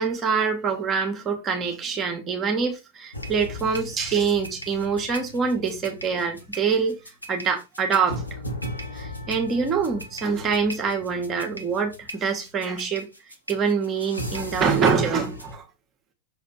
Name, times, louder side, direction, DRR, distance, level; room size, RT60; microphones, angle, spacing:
voice 1, 0.0-6.9 7.3-8.4 8.9-13.1 13.5-15.7, right 5 dB, 25° right, 1.7 m, -25 dB
sound 1, 3.1-15.6, equal, 90° left, 1.2 m, -37 dB
6.6 x 4.2 x 4.4 m
figure-of-eight pair, 90°, 0 cm